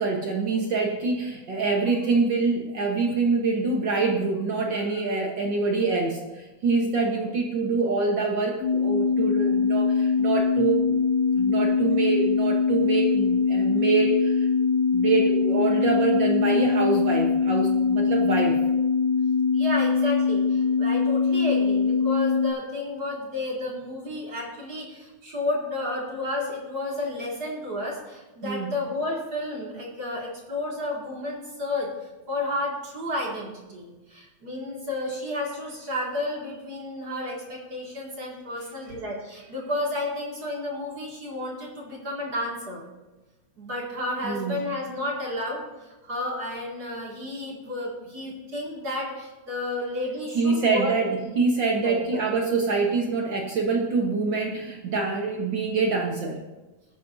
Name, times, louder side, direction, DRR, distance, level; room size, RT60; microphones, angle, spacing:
voice 1, 0.0-11.0 11.3-14.5 14.9-18.6 28.4-28.7 44.2-44.6 50.3-56.4, right 4 dB, 70° right, 0 dB, 1.1 m, -25 dB
sound 1, 8.6-22.5, left 5 dB, 85° left, 2.4 m, -22 dB
voice 2, 19.5-31.9 32.3-42.9 43.6-51.2 51.8-52.2, left 2 dB, 35° right, -2 dB, 2.2 m, -32 dB
19.0 x 9.4 x 2.7 m, 1.2 s
omnidirectional pair, 3.7 m